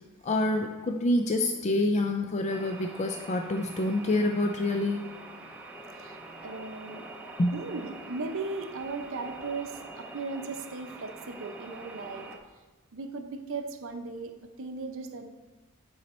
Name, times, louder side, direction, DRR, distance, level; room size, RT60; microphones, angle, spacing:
voice 1, 0.2-5.0 7.4-7.6, left 1 dB, 30° left, 4 dB, 0.4 m, -27 dB
sound 1, 2.5-12.4, right 2 dB, 5° right, 0.7 m, -45 dB
voice 2, 6.0-7.1 7.5-12.3 12.9-14.3 14.6-15.2, right 3 dB, 65° right, 6 dB, 0.7 m, -37 dB
9.6 x 4.1 x 4.3 m, 1.2 s
head